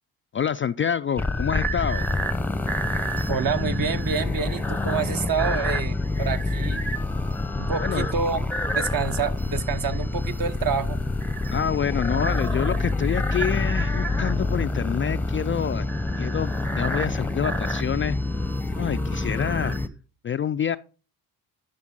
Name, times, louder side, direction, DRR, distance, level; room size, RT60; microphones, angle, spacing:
voice 1, 0.3-2.1 7.8-8.1 11.5-15.9 16.2-18.2 18.8-19.8 20.2-20.8, left 8 dB, 30° left, 0.3 m, -27 dB
sound 1, 1.2-19.9, left 2 dB, 5° left, 0.7 m, -26 dB
voice 2, 3.3-6.9 7.6-8.4 8.7-11.0, right 6 dB, 45° right, 1.0 m, -28 dB
11.5 x 5.7 x 3.9 m
hypercardioid pair, 50°, 46 cm